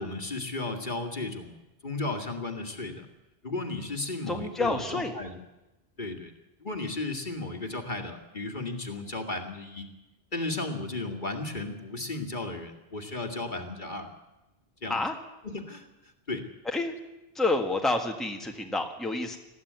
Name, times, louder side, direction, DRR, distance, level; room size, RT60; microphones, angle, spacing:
voice 1, 0.0-1.6 1.8-3.1 3.4-5.4 6.0-6.3 6.6-9.9 10.3-14.1 14.8-15.0 15.4-15.9 16.3-16.4, left 2 dB, 45° left, 5 dB, 2.3 m, -34 dB
voice 2, 4.3-5.1 14.9-15.1 16.6-16.9 17.3-19.4, left 2 dB, ahead, 3 dB, 1.7 m, -28 dB
20.0 x 14.5 x 9.5 m, 1.0 s
omnidirectional pair, 1.1 m